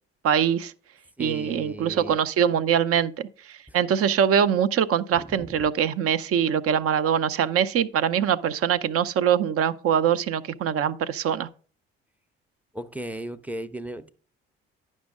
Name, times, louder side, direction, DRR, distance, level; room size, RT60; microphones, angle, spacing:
voice 1, 0.2-0.7 1.2-11.5, right 8 dB, 50° right, 0.5 m, -23 dB
voice 2, 1.2-2.2 3.7-3.8 5.1-5.7 12.7-14.1, right 1 dB, 5° right, 0.6 m, -36 dB
10.0 x 5.4 x 3.6 m
hypercardioid pair, 55°, 30 cm